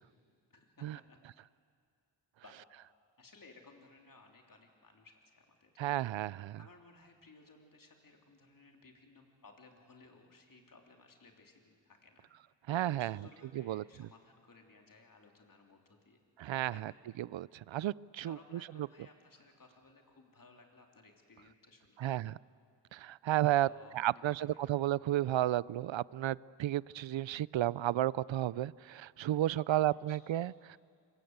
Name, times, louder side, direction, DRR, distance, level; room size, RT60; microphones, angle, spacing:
voice 1, 0.5-1.3 2.4-2.6 3.2-5.7 6.6-12.3 13.0-16.2 16.7-17.0 18.2-22.1 23.7-24.8 29.7-30.4, left 3 dB, 45° left, 3.4 m, -60 dB
voice 2, 5.8-6.6 12.7-13.2 13.7-13.8 16.4-16.9 17.2-18.4 22.0-22.3 22.9-23.7 23.9-30.8, right 13 dB, 80° right, 0.5 m, -32 dB
26.0 x 23.5 x 8.0 m
wide cardioid pair, 105°, 45 cm